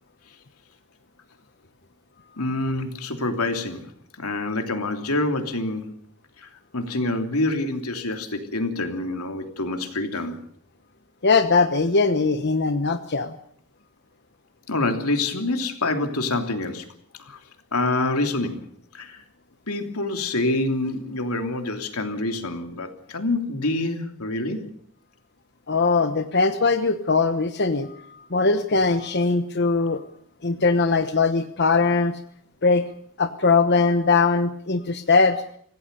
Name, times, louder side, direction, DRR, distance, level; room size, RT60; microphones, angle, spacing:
voice 1, 2.4-3.9 4.2-5.9 6.4-6.5 6.7-10.4 14.7-16.9 17.2-17.4 17.7-19.2 19.7-24.7, left 2 dB, 85° left, 5 dB, 3.1 m, -26 dB
voice 2, 11.2-13.3 25.7-30.0 30.4-32.1 32.6-32.8 33.2-35.4, left 4 dB, 50° left, 8 dB, 1.1 m, -21 dB
26.0 x 17.0 x 6.8 m, 0.65 s
head